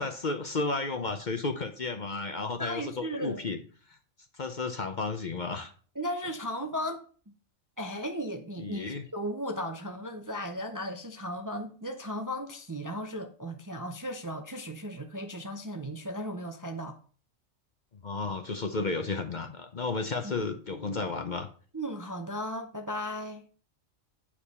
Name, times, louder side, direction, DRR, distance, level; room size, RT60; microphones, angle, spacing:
voice 1, 0.0-3.6 3.9-4.0 4.3-5.7 8.6-9.0 17.9-21.5, left 3 dB, 45° left, 0.8 m, -33 dB
voice 2, 2.6-3.4 6.0-7.1 7.8-17.0 20.2-20.3 21.7-23.4, equal, 20° right, 0.5 m, -36 dB
8.6 x 4.9 x 5.4 m
omnidirectional pair, 1.3 m